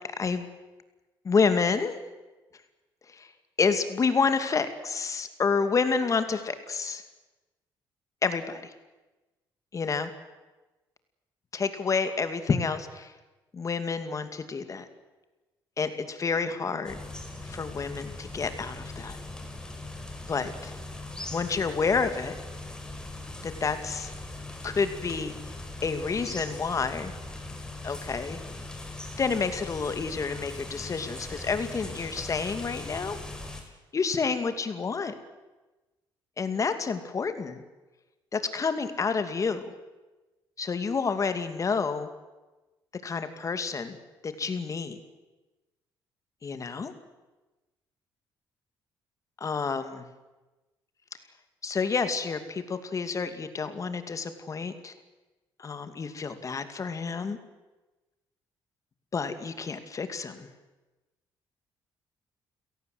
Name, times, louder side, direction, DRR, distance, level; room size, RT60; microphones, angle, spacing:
voice 1, 1.2-1.9 3.1-3.3 3.6-7.0 8.2-8.6 9.7-10.1 11.5-13.1 13.5-14.9 15.8-17.0 17.4-19.2 20.3-20.7 21.3-22.3 23.4-24.1 24.6-25.3 25.8-27.1 27.8-28.4 29.2-33.2 33.9-35.1 36.4-37.6 38.3-39.7 40.6-42.1 43.0-44.0 44.2-45.0 46.4-46.9 49.4-50.0 51.6-54.9 55.6-57.4 59.1-60.5, left 5 dB, 40° left, 10 dB, 2.4 m, -29 dB
sound 1, 16.8-33.6, left 2 dB, 10° left, 4.4 m, -40 dB
29.0 x 17.5 x 7.9 m, 1.1 s
cardioid pair, 95°, 9 cm